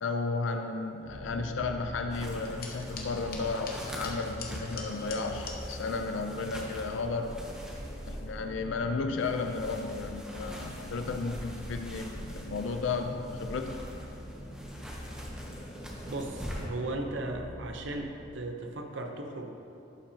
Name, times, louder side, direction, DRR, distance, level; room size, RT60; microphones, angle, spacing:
voice 1, 0.0-7.4 8.1-13.8, left 4 dB, 70° left, 6 dB, 0.4 m, -33 dB
sound 1, 1.0-18.4, equal, 15° left, 1.7 m, -44 dB
sound 2, 2.1-16.7, equal, 5° right, 0.7 m, -44 dB
sound 3, 2.3-5.6, left 4 dB, 45° left, 0.8 m, -44 dB
voice 2, 16.1-19.5, right 2 dB, 65° right, 4 dB, 0.6 m, -36 dB
11.0 x 5.7 x 2.7 m, 2.7 s
head